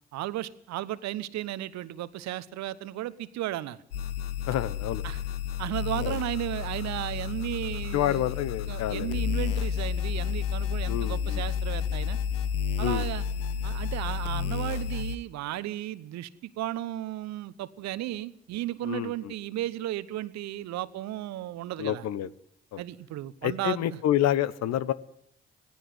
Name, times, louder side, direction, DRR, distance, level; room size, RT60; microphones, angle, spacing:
voice 1, 0.1-3.8 5.0-5.2 5.6-8.3 8.7-12.2 12.8-13.2 13.6-22.0 22.8-24.0, right 14 dB, 65° right, 17 dB, 1.0 m, -34 dB
sound 1, 3.9-15.1, left 8 dB, 80° left, 1.0 m, -31 dB
voice 2, 4.5-5.0 6.0-6.1 7.9-9.2 10.9-11.4 12.8-13.1 18.8-19.1 21.8-22.3 22.7-22.8 23.4-24.9, left 12 dB, 65° left, 17 dB, 1.0 m, -28 dB
18.0 x 16.0 x 9.6 m, 0.70 s
hypercardioid pair, 40°, 29 cm